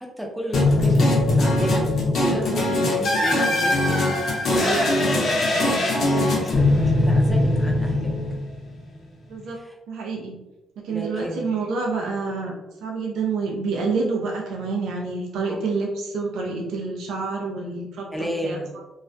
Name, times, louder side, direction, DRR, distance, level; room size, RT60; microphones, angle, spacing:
voice 1, 0.0-4.1 4.5-5.8 6.1-8.1 9.5-9.7 10.9-11.7 15.4-15.6 18.1-18.7, equal, ahead, -1 dB, 0.5 m, -32 dB
sound 1, 0.5-8.8, left 1 dB, 55° left, 0.6 m, -21 dB
voice 2, 9.9-10.4 10.8-12.5 12.8-18.6, right 4 dB, 85° right, -1 dB, 0.4 m, -28 dB
2.3 x 2.1 x 2.5 m, 1.0 s
cardioid pair, 130°, 0 cm